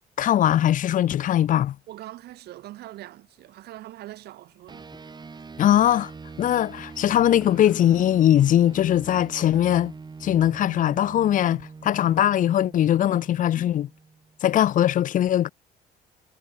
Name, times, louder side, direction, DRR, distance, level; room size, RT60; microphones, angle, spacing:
voice 1, 0.2-1.8 5.6-6.1 6.4-9.9 10.2-13.9 14.4-15.5, left 11 dB, 50° left, 0.7 m, -21 dB
voice 2, 1.9-4.9, right 15 dB, 75° right, 2.3 m, -42 dB
sound 1, 4.7-5.7 6.0-8.7, left 1 dB, 5° left, 7.1 m, -58 dB
sound 2, 4.7-14.4, right 4 dB, 25° right, 6.5 m, -43 dB
cardioid pair, 110°, 17 cm